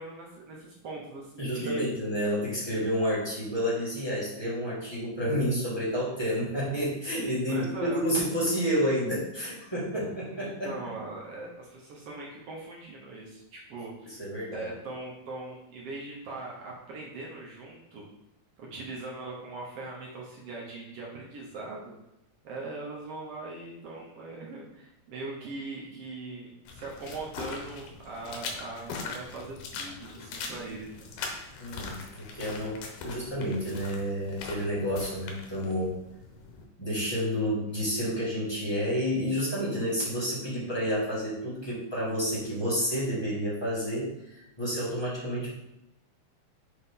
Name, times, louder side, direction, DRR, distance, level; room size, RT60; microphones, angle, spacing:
voice 1, 0.0-1.9 7.5-8.0 10.4-14.2 14.5-18.0 18.6-21.9 22.4-31.1, right 3 dB, 60° right, -3 dB, 1.7 m, -40 dB
voice 2, 1.4-10.8 14.0-14.7 31.6-36.0 36.8-45.5, equal, 15° left, -8 dB, 0.9 m, -30 dB
sound 1, 26.6-36.6, left 4 dB, 85° left, 2.6 m, -41 dB
6.8 x 4.3 x 3.7 m, 0.88 s
omnidirectional pair, 3.7 m